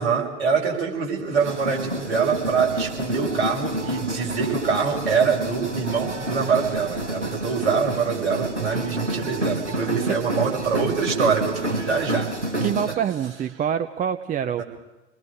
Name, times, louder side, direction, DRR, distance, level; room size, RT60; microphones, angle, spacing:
voice 1, 0.0-12.3 14.6-14.7, right 5 dB, 60° right, 0 dB, 6.0 m, -24 dB
sound 1, 1.4-12.9, right 1 dB, 90° right, 1.6 m, -29 dB
voice 2, 12.6-14.6, right 8 dB, 25° right, 10 dB, 0.8 m, -26 dB
29.0 x 20.5 x 5.0 m, 1.1 s
figure-of-eight pair, 80°, 35 cm